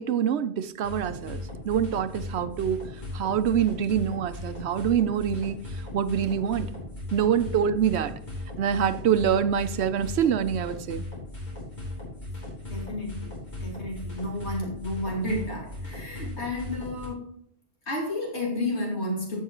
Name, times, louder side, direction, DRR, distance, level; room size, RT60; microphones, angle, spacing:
voice 1, 0.0-2.9 3.1-5.6 5.9-6.7 7.1-8.1 8.6-11.0, right 8 dB, 80° right, 0.9 m, -25 dB
sound 1, 0.8-17.1, left 2 dB, 45° left, 3.8 m, -37 dB
voice 2, 12.7-13.3 13.6-17.3 17.9-19.4, left 1 dB, 85° left, 2.9 m, -31 dB
15.5 x 5.6 x 3.0 m
omnidirectional pair, 1.1 m